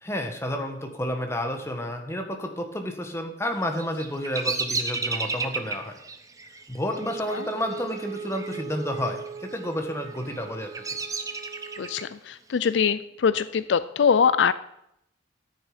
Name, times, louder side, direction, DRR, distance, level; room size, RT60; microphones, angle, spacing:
voice 1, 0.0-5.9 6.7-10.7, equal, 15° left, 4 dB, 1.5 m, -30 dB
Bird vocalization bird call bird song, 3.6-8.6 8.9-9.5 10.0-12.0, right 4 dB, 20° right, 0.8 m, -32 dB
Wind instrument woodwind instrument, 6.8-12.1, right 6 dB, 35° right, 0.4 m, -38 dB
voice 2, 11.8-14.5, left 6 dB, 70° left, 15 dB, 0.4 m, -23 dB
13.5 x 9.1 x 5.1 m, 0.79 s
head